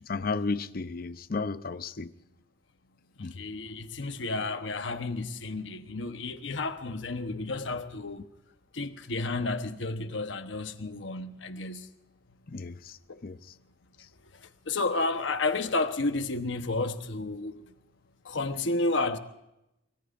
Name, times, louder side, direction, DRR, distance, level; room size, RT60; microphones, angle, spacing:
voice 1, 0.1-2.1 3.2-3.4 12.5-13.0 13.2-13.4, left 4 dB, 50° left, 0.6 m, -33 dB
voice 2, 3.2-8.3 8.7-11.9 13.1-13.2 14.4-17.6 18.2-19.2, left 3 dB, 75° left, 1.1 m, -31 dB
24.5 x 23.0 x 2.6 m
head